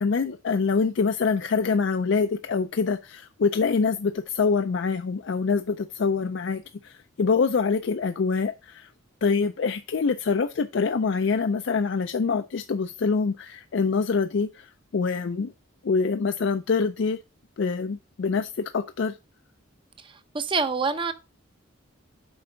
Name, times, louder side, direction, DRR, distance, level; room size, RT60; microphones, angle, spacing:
voice 1, 0.0-8.9 9.2-15.5 15.8-17.2 17.6-19.2, left 5 dB, 60° left, 0.4 m, -25 dB
voice 2, 20.3-21.1, right 4 dB, 25° right, 0.6 m, -25 dB
7.8 x 5.4 x 3.8 m
head